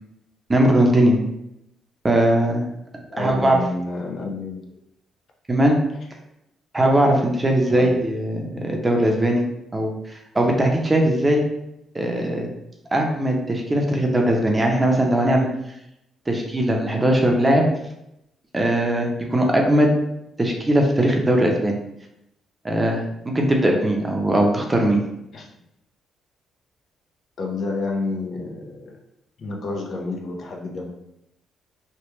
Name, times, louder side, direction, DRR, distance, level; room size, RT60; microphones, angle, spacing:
voice 1, 0.5-1.2 2.0-2.6 3.2-3.6 5.5-5.8 6.7-9.4 9.7-11.4 11.9-12.5 12.9-15.5 16.3-17.7 18.5-19.9 20.4-21.8 22.6-23.0 23.3-25.0, right 1 dB, 20° right, 1 dB, 0.6 m, -19 dB
voice 2, 3.1-4.7 7.7-8.0 25.3-25.5 27.4-29.0 29.4-30.9, left 3 dB, 55° left, 1 dB, 0.6 m, -29 dB
3.1 x 2.1 x 3.1 m, 0.83 s
cardioid pair, 90°, 0 cm